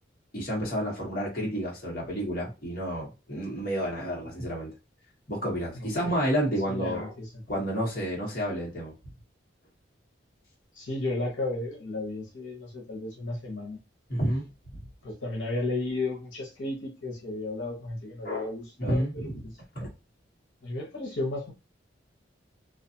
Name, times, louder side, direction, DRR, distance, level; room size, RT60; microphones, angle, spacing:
voice 1, 0.3-4.7 5.3-7.1 7.5-8.9 14.1-14.5 18.2-18.5 18.8-19.3 19.7-19.9, equal, 50° left, -3 dB, 1.1 m, -30 dB
voice 2, 5.7-6.1 6.7-7.6 10.7-13.8 15.0-19.5 20.6-21.5, left 2 dB, 85° left, -2 dB, 0.9 m, -34 dB
2.5 x 2.4 x 2.7 m, 0.28 s
head